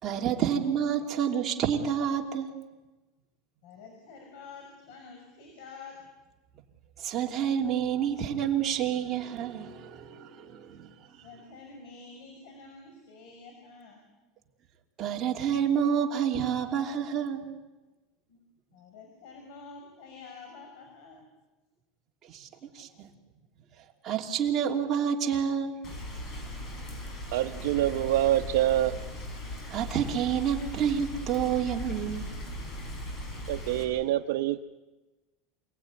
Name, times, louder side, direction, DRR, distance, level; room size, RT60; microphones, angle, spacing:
voice 1, 0.0-2.5 7.0-10.9 15.0-17.5 22.3-22.5 22.7-23.1 24.0-25.8 29.7-32.3, right 8 dB, 30° right, 0 dB, 3.0 m, -28 dB
voice 2, 3.6-6.0 11.1-14.0 18.3-18.4 18.7-21.2, left 4 dB, 70° left, 3 dB, 6.0 m, -48 dB
Rain, 25.8-33.8, left 1 dB, 35° left, 6.0 m, -38 dB
voice 3, 27.3-29.0 33.5-34.7, right 13 dB, 80° right, 3 dB, 0.9 m, -26 dB
28.5 x 19.0 x 9.7 m, 1.2 s
supercardioid pair, 155°, 0 cm